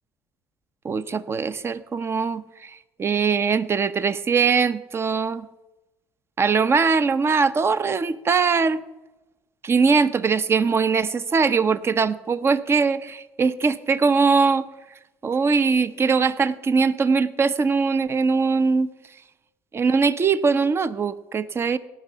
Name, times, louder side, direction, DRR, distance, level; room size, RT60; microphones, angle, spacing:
voice 1, 0.8-5.5 6.4-8.8 9.6-14.7 15.2-18.9 19.7-21.8, right 5 dB, 35° right, 14 dB, 0.8 m, -21 dB
18.0 x 6.2 x 6.8 m, 1.0 s
supercardioid pair, 95°, 8 cm